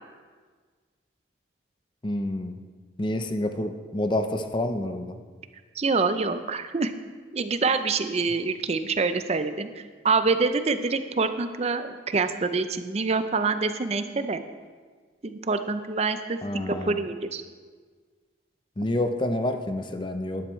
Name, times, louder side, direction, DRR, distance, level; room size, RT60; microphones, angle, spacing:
voice 1, 2.0-2.6 3.0-5.2 16.4-17.0 18.8-20.5, left 1 dB, 25° left, 7 dB, 0.6 m, -28 dB
voice 2, 5.8-6.9 7.3-9.7 10.0-14.4 15.2-17.4, right 4 dB, 35° right, 10 dB, 0.5 m, -26 dB
12.0 x 11.0 x 3.1 m, 1.5 s
head